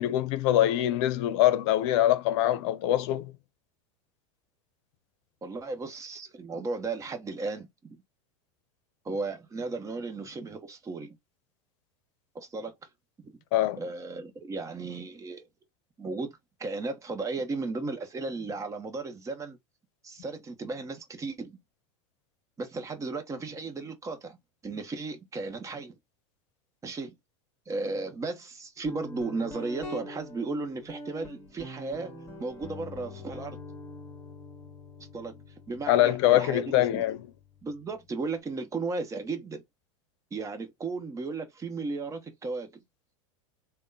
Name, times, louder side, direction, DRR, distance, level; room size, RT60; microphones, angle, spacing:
voice 1, 0.0-3.3 13.5-13.8 35.9-37.3, left 13 dB, 60° left, 0.7 m, -24 dB
voice 2, 5.4-8.0 9.0-11.2 12.3-12.7 13.2-13.3 13.8-15.5 16.0-19.6 20.0-21.6 22.6-24.4 24.6-26.0 26.8-27.2 27.7-32.1 32.4-33.6 35.1-37.0 37.6-39.6 40.3-42.8, right 3 dB, 20° right, 1.0 m, -35 dB
Guitar, 28.9-38.3, left 2 dB, 15° left, 2.0 m, -45 dB
3.5 x 2.2 x 3.9 m
hypercardioid pair, 105°, 16 cm